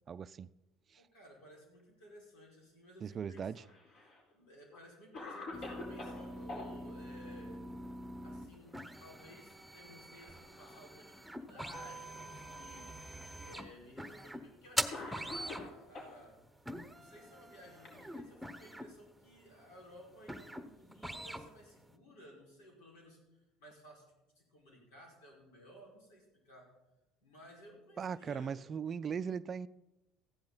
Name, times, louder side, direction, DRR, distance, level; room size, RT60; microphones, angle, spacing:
voice 1, 0.1-0.5 0.9-1.0 3.0-3.6 28.0-29.7, right 7 dB, 40° right, 0.4 m, -39 dB
voice 2, 1.0-3.5 4.0-7.7 8.2-12.9 13.4-16.4 16.9-26.7 27.2-28.6, equal, 80° left, 5.1 m, -57 dB
Cough, 3.3-4.2 4.7-4.8 5.1-6.7 8.5-9.0 9.3-9.4 10.2-10.9 11.7-11.8 12.9-13.0 14.1-14.3 14.9-16.2 17.1-18.6, left 2 dB, 55° left, 4.3 m, -47 dB
sound 1, 5.5-21.9, right 1 dB, ahead, 1.0 m, -44 dB
15.0 x 10.5 x 4.1 m
supercardioid pair, 80°, 0 cm